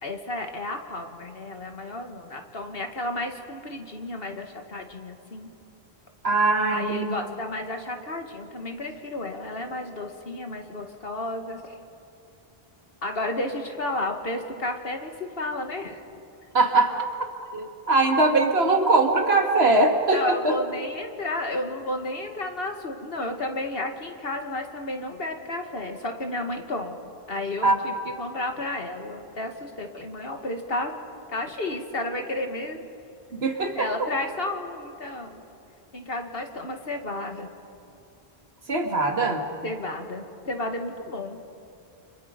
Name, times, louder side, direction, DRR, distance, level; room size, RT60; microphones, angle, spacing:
voice 1, 0.0-5.5 6.7-11.7 13.0-16.0 20.1-27.0 27.3-30.9 31.3-32.8 33.8-35.4 35.9-37.5 39.6-41.4, left 2 dB, 65° left, 4 dB, 2.2 m, -32 dB
voice 2, 6.2-7.2 16.5-17.0 17.5-20.5 27.6-27.8 33.3-34.1 38.7-39.4, right 2 dB, 80° right, 3 dB, 2.4 m, -21 dB
29.5 x 27.0 x 5.3 m, 2.8 s
omnidirectional pair, 1.0 m